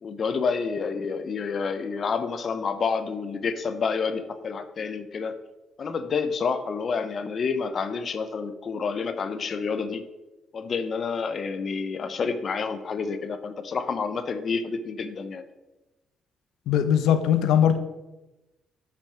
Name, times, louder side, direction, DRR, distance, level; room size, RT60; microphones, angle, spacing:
voice 1, 0.0-5.3 5.8-10.0 10.5-15.4, left 5 dB, 50° left, 10 dB, 0.9 m, -29 dB
voice 2, 16.7-17.8, left 9 dB, 85° left, 10 dB, 0.8 m, -20 dB
8.7 x 6.0 x 5.0 m, 1.0 s
cardioid pair, 90°, 0 cm